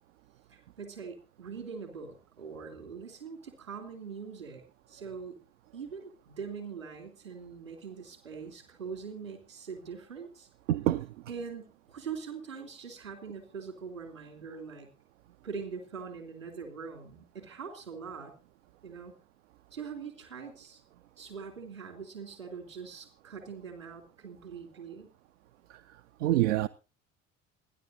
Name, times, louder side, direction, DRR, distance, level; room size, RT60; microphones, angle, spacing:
voice 1, 0.5-4.6 4.9-5.3 5.7-10.5 11.3-14.9 15.4-18.3 18.8-19.1 19.7-20.8 21.2-25.1, right 6 dB, 85° right, 3.4 m, -42 dB
voice 2, 10.7-11.1 25.7-25.8 26.2-26.7, right 14 dB, 70° right, 0.6 m, -26 dB
27.5 x 10.5 x 2.7 m
figure-of-eight pair, 55°, 39 cm